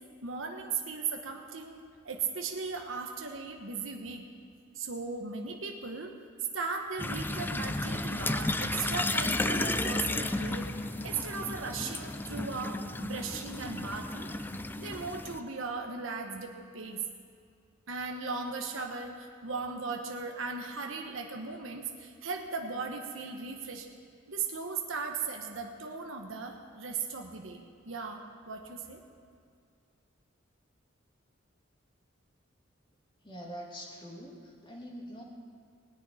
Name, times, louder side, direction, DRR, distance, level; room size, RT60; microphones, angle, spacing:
voice 1, 0.2-4.3 4.7-6.1 6.5-10.7 11.0-14.3 14.8-17.0 17.9-23.9 24.3-29.0, right 4 dB, 85° right, 2 dB, 1.3 m, -37 dB
sound 1, 7.0-15.4, left 2 dB, 10° left, 0.4 m, -33 dB
Wind instrument woodwind instrument, 7.8-11.9, left 3 dB, 55° left, 0.9 m, -51 dB
voice 2, 33.2-35.2, equal, 25° left, -2 dB, 2.7 m, -44 dB
18.5 x 6.6 x 9.5 m, 2.2 s
head